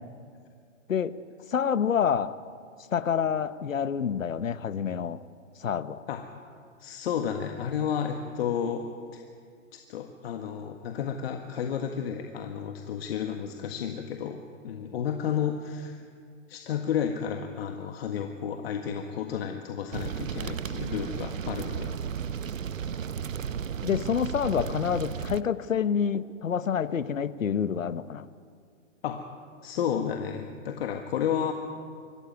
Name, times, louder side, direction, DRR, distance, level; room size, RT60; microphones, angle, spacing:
voice 1, 1.5-2.4 2.9-5.2 5.6-6.0 23.8-28.3, left 7 dB, 85° left, 14 dB, 1.1 m, -27 dB
voice 2, 6.8-8.8 9.1-9.2 9.7-14.4 14.6-16.0 16.5-22.0 29.0-29.2 29.6-31.5, left 8 dB, 50° left, 4 dB, 1.7 m, -32 dB
sound 1, 19.9-25.4, right 7 dB, 85° right, 0.9 m, -34 dB
24.5 x 15.0 x 9.6 m, 2.2 s
hypercardioid pair, 135°, 38 cm